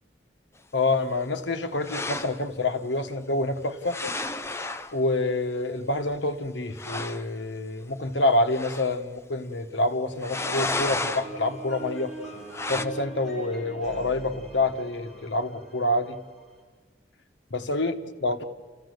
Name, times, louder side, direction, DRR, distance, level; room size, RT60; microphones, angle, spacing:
voice 1, 0.7-4.0 4.9-12.1 12.7-16.2 17.5-18.4, left 2 dB, 85° left, 1.3 m, -27 dB
sound 1, 1.8-2.4 3.8-4.9 6.1-6.2 6.5-6.6 6.8-7.2 8.5-9.0 10.2-11.3 12.5-12.9, left 2 dB, 15° left, 0.6 m, -31 dB
sound 2, 10.8-16.6, right 3 dB, ahead, 6.0 m, -43 dB
30.0 x 15.0 x 8.0 m
head